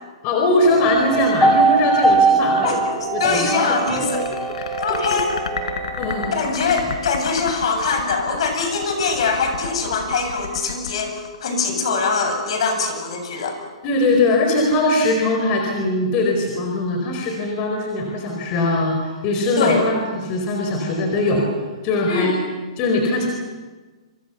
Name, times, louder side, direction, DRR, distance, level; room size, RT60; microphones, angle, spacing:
voice 1, 0.2-2.7 3.1-3.5 4.6-4.7 6.0-6.3 13.8-21.4 21.8-22.4 22.8-23.3, left 2 dB, 30° left, 1 dB, 4.5 m, -21 dB
sound 1, 0.6-7.0 7.2-7.3, right 3 dB, ahead, 2.8 m, -21 dB
voice 2, 2.6-4.3 4.8-5.3 6.3-11.1 11.4-13.6 19.6-19.8 22.1-22.3, left 4 dB, 60° left, 5 dB, 7.6 m, -22 dB
sound 2, 3.3-12.0, left 5 dB, 90° left, 4.2 m, -32 dB
29.0 x 25.5 x 7.1 m, 1.3 s
hypercardioid pair, 160°, 3 cm